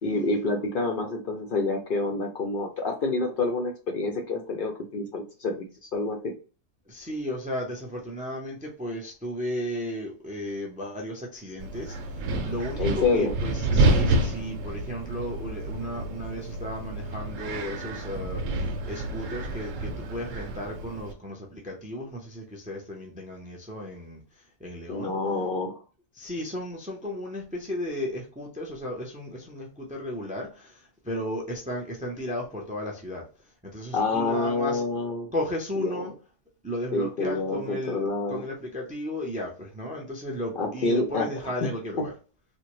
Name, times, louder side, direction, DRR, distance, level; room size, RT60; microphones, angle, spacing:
voice 1, 0.0-6.3 12.8-13.3 24.9-25.8 33.9-35.3 35.8-36.1 36.9-38.4 40.6-41.3 41.6-41.7 42.0-42.1, left 3 dB, 55° left, 0.6 m, -28 dB
voice 2, 6.9-24.2 24.6-25.1 26.2-33.3 33.6-34.8 35.3-36.1 36.6-38.0 38.3-42.1, left 1 dB, 10° right, 0.4 m, -34 dB
Wind, 11.6-21.1, right 2 dB, 85° right, 1.0 m, -29 dB
3.5 x 2.1 x 3.0 m
omnidirectional pair, 1.3 m